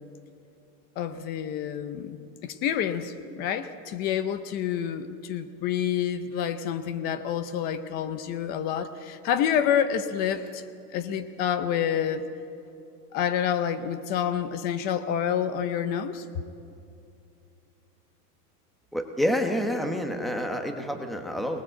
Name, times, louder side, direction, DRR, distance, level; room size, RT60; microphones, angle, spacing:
voice 1, 1.0-2.2 2.4-10.6 10.9-12.2 13.1-16.2, left 9 dB, 20° left, 11 dB, 0.6 m, -28 dB
voice 2, 18.9-21.6, equal, ahead, 5 dB, 1.0 m, -28 dB
24.0 x 19.5 x 7.8 m, 2.6 s
supercardioid pair, 155°, 46 cm